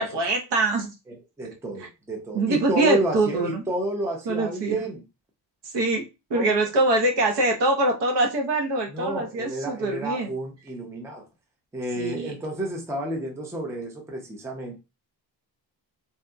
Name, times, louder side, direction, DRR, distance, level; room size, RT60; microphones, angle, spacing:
voice 1, 0.0-0.9 2.3-3.6 4.3-4.8 5.7-6.0 6.3-10.3 12.0-12.3, right 2 dB, 75° right, 0.9 m, -24 dB
voice 2, 1.1-5.0 6.3-6.6 8.9-11.3 11.7-14.8, right 1 dB, 5° right, 0.4 m, -30 dB
2.7 x 2.5 x 2.2 m
wide cardioid pair, 170°, 42 cm